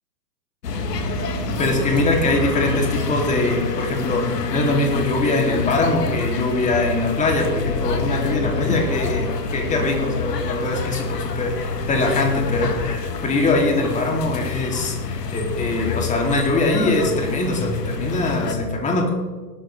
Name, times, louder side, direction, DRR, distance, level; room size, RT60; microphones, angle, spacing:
sound 1, 0.6-18.5, left 4 dB, 80° left, 2.0 m, -27 dB
voice 1, 1.6-19.1, left 2 dB, 15° left, 0 dB, 2.7 m, -22 dB
17.5 x 12.0 x 3.3 m, 1.4 s
hypercardioid pair, 125°, 48 cm